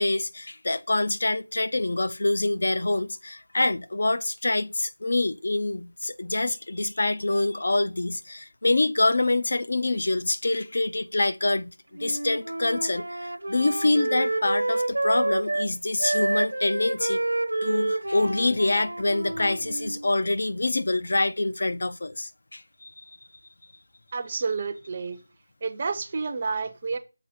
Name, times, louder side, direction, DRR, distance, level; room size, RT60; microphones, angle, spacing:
voice 1, 0.0-11.7 12.0-17.2 17.5-22.9, left 2 dB, 45° left, 0.5 m, -26 dB
Wind instrument woodwind instrument, 11.9-15.7 16.0-20.1, right 2 dB, 70° right, 0.9 m, -28 dB
voice 2, 24.1-25.2 25.6-27.0, right 4 dB, 20° right, 0.5 m, -30 dB
6.9 x 3.6 x 5.0 m
figure-of-eight pair, 175°, 0 cm